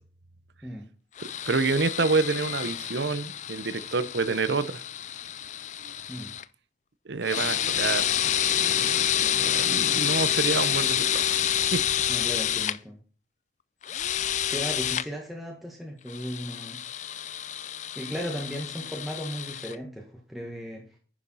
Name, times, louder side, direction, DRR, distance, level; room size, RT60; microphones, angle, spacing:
sound 1, 1.2-6.4 7.2-12.8 13.8-15.1 16.1-19.8, left 10 dB, 40° left, 0.4 m, -28 dB
voice 1, 1.2-4.8 7.1-8.1 8.5-11.8, right 4 dB, 75° right, 0.7 m, -28 dB
voice 2, 12.1-13.0 14.4-16.8 17.9-20.8, equal, ahead, 1.5 m, -36 dB
10.0 x 7.0 x 4.0 m
head